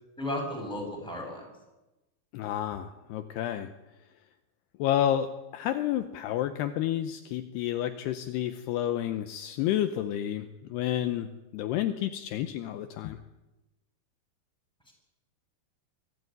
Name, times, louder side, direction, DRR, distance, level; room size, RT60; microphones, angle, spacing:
voice 1, 0.2-1.5 14.9-15.0, left 1 dB, ahead, 1 dB, 7.5 m, -34 dB
voice 2, 2.3-3.7 4.8-11.3 11.5-13.2, left 11 dB, 75° left, 9 dB, 2.8 m, -30 dB
23.5 x 15.5 x 9.5 m, 1.0 s
omnidirectional pair, 5.0 m